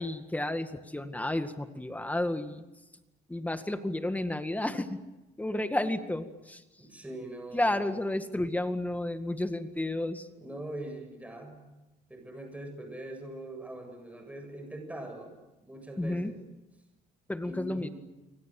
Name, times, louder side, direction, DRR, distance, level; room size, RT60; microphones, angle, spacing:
voice 1, 0.0-2.6 3.3-5.0 5.4-6.6 7.5-10.3 16.0-16.3 17.3-17.9, left 1 dB, 10° left, 8 dB, 1.9 m, -31 dB
voice 2, 6.8-7.9 10.4-11.7 12.1-15.3 15.6-16.4 17.4-17.9, right 1 dB, 10° right, 4 dB, 7.7 m, -42 dB
28.0 x 25.0 x 7.7 m, 1.0 s
cardioid pair, 110°, 17 cm